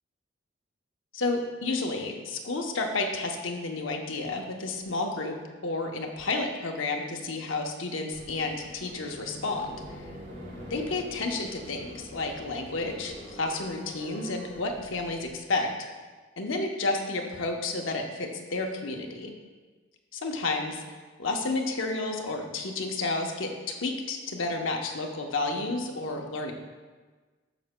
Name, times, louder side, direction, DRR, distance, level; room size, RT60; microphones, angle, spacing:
voice 1, 1.1-5.3 5.6-9.8 10.7-15.7 16.4-19.3 20.1-20.8 21.2-26.5, left 3 dB, 75° left, 2 dB, 0.8 m, -31 dB
sound 1, 8.1-15.3, equal, 50° right, 2.3 m, -44 dB
10.0 x 6.9 x 2.2 m, 1.4 s
head